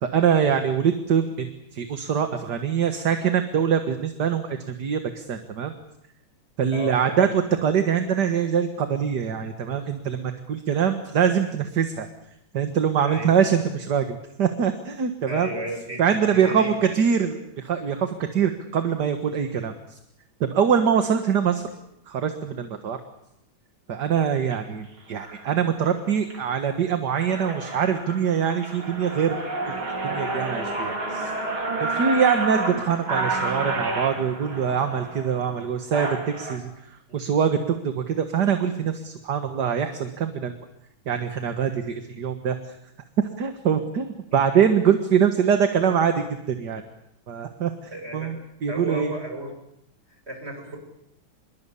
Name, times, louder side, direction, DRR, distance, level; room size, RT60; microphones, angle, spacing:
voice 1, 0.0-5.7 6.6-12.1 12.5-15.5 16.0-20.0 20.4-21.7 22.1-23.0 23.9-29.4 29.7-29.8 30.0-31.3 31.8-40.6 41.1-42.7 43.4-46.8 47.3-47.7 48.1-49.1, right 7 dB, 55° right, 7 dB, 2.1 m, -24 dB
voice 2, 6.7-7.2 13.0-13.4 15.3-17.0 37.1-37.2 44.3-44.4 47.9-48.3 48.7-49.5 50.1-50.8, right 1 dB, 30° right, 3 dB, 7.4 m, -34 dB
sound 1, 24.4-24.5 25.2-25.4 25.9-26.4 26.8-26.9 27.1-36.6, right 2 dB, 85° right, 4.7 m, -30 dB
26.0 x 22.5 x 8.5 m, 0.79 s
omnidirectional pair, 2.2 m